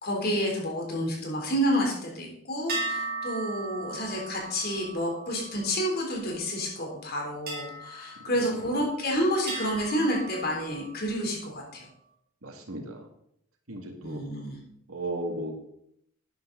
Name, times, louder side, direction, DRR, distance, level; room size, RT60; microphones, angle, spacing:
voice 1, 0.0-11.8 14.0-14.6, equal, 45° left, 0 dB, 3.4 m, -29 dB
sound 1, 2.7-6.4 7.5-9.0 9.5-11.1, right 3 dB, 45° right, 3.4 m, -38 dB
voice 2, 12.4-13.1 13.7-14.2 14.9-15.5, right 1 dB, 85° right, 2 dB, 2.3 m, -36 dB
12.5 x 9.1 x 4.0 m, 0.73 s
head